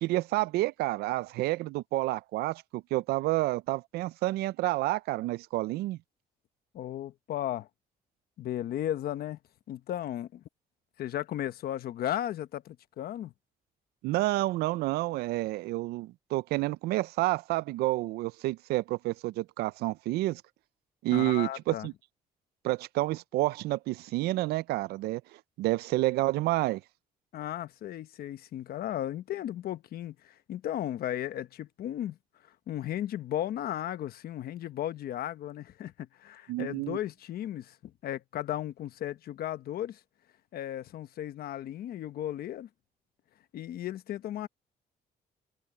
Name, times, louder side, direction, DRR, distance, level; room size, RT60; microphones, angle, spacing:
voice 1, 0.0-6.0 14.0-20.4 21.0-21.9 22.6-25.2 25.6-26.8 36.5-37.0, right 18 dB, 90° right, 0.4 m, -29 dB
voice 2, 6.7-7.7 8.4-9.4 9.7-10.4 11.0-13.3 21.1-21.9 27.3-32.2 32.7-40.0 40.5-42.7 43.5-44.5, left 12 dB, 75° left, 1.2 m, -35 dB
cardioid pair, 85°, 16 cm